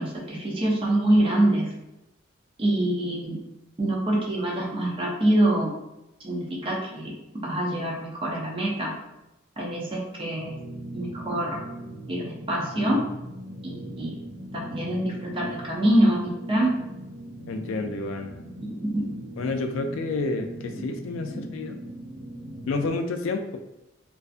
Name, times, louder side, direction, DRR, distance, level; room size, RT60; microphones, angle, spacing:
voice 1, 0.0-1.7 2.6-3.4 3.8-5.7 6.2-7.1 7.4-8.9 9.6-10.6 10.9-11.6 12.1-13.0 13.6-14.1 14.5-16.7 18.8-19.1 21.3-21.4, right 1 dB, 25° right, -2 dB, 0.5 m, -25 dB
sound 1, 10.3-22.9, right 1 dB, 10° left, 0.7 m, -39 dB
voice 2, 17.5-18.4 19.4-21.8 22.5-23.6, left 3 dB, 80° left, 7 dB, 0.3 m, -30 dB
2.5 x 2.3 x 2.4 m, 0.90 s
head